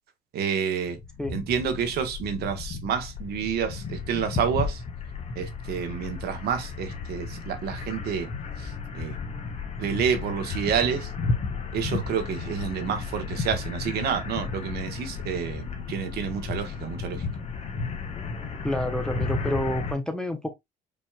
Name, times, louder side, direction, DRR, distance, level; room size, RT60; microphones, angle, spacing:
voice 1, 0.3-1.0 1.3-4.8 5.3-8.3 8.6-9.2 9.8-11.1 11.7-17.3, right 7 dB, 70° right, 1.3 m, -29 dB
sound 1, 0.9-19.9, left 4 dB, 40° left, 1.2 m, -33 dB
voice 2, 18.6-20.5, left 1 dB, 5° left, 0.8 m, -28 dB
5.2 x 3.1 x 2.3 m
cardioid pair, 110°, 17 cm